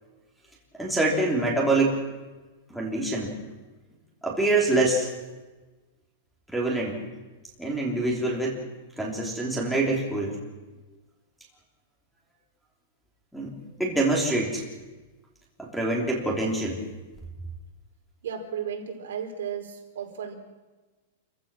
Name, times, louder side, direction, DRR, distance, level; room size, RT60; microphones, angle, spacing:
voice 1, 0.8-2.0 2.7-3.3 4.2-5.1 6.5-7.0 7.6-8.6 9.0-10.4 13.3-13.5 13.8-14.6 15.6-16.8, right 2 dB, ahead, -4 dB, 3.3 m, -25 dB
voice 2, 18.2-20.3, right 8 dB, 85° right, 1 dB, 4.8 m, -34 dB
28.5 x 15.0 x 6.3 m, 1.2 s
supercardioid pair, 170°, 0 cm